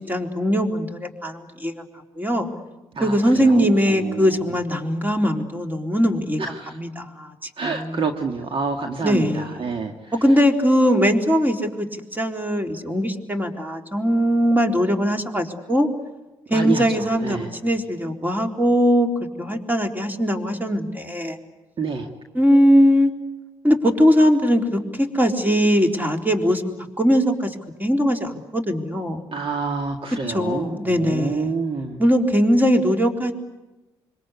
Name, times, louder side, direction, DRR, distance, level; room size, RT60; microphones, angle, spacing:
voice 1, 0.0-1.8 2.2-2.5 3.0-6.4 6.7-8.0 9.0-9.7 10.2-15.9 16.5-19.1 19.4-21.4 22.3-23.1 23.6-29.2 30.3-31.5 32.0-33.3, equal, 15° right, 4 dB, 3.9 m, -20 dB
voice 2, 3.0-4.4 6.4-6.7 7.6-9.9 16.5-17.5 21.8-22.1 29.3-32.0, right 4 dB, 45° right, 4 dB, 2.1 m, -28 dB
26.0 x 24.5 x 8.4 m, 1.0 s
hypercardioid pair, 50°, 12 cm